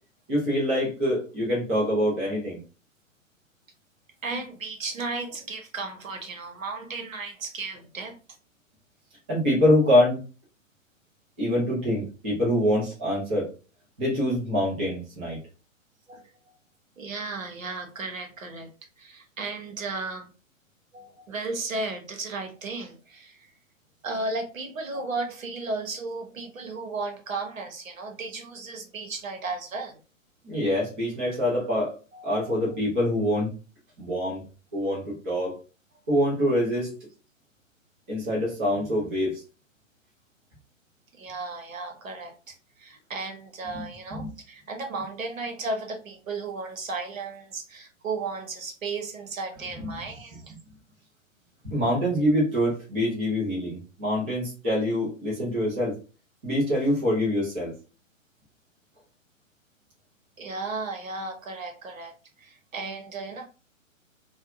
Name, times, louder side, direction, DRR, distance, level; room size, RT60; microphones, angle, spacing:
voice 1, 0.3-2.6 9.3-10.2 11.4-13.5 14.0-15.4 30.4-32.0 32.2-33.5 34.0-34.4 34.7-35.6 36.1-36.9 38.1-39.4 43.7-43.8 44.1-44.3 49.8-49.9 51.6-55.9 56.4-57.7, left 1 dB, 10° right, -8 dB, 0.4 m, -25 dB
voice 2, 4.2-8.2 16.1-16.3 17.0-18.7 19.0-20.3 20.9-23.5 24.0-30.0 32.1-32.4 41.1-50.5 60.4-63.5, right 3 dB, 75° right, 4 dB, 0.9 m, -35 dB
2.6 x 2.2 x 2.4 m, 0.34 s
figure-of-eight pair, 130°, 40 cm